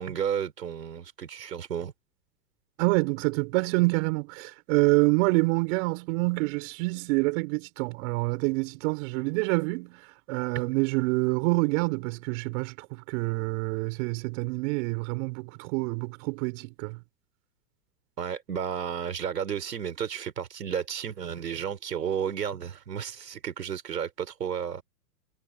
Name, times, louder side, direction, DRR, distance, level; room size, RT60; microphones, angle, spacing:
voice 1, 0.0-1.9 18.2-24.8, right 8 dB, 80° right, 4.4 m, -32 dB
voice 2, 2.8-17.0, right 28 dB, 50° right, 5.1 m, -27 dB
hypercardioid pair, 110°, 48 cm